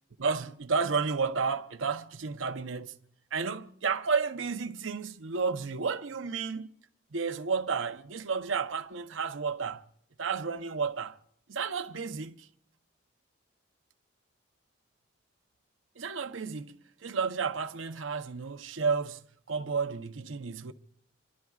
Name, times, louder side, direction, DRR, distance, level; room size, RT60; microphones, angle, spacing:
voice 1, 0.2-2.9 3.3-6.7 7.1-9.8 10.2-11.2 11.5-12.5 16.0-20.7, right 5 dB, 85° right, 0.8 m, -32 dB
27.5 x 11.5 x 2.4 m
head